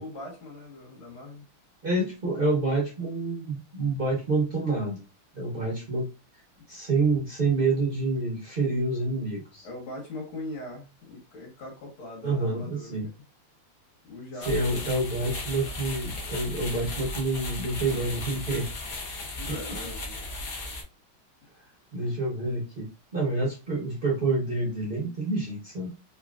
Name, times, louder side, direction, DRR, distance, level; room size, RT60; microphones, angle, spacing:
voice 1, 0.0-1.5 9.6-13.1 14.0-15.0 19.4-20.2, left 1 dB, 80° left, 2.0 m, -40 dB
voice 2, 1.8-5.0 5.3-6.1 6.7-9.7 12.2-13.1 14.5-18.7 19.5-19.8 21.9-22.9 23.1-25.9, right 2 dB, 60° right, 0.5 m, -28 dB
sound 1, 14.4-20.8, left 2 dB, 55° left, 1.1 m, -36 dB
3.8 x 3.0 x 2.3 m
omnidirectional pair, 2.4 m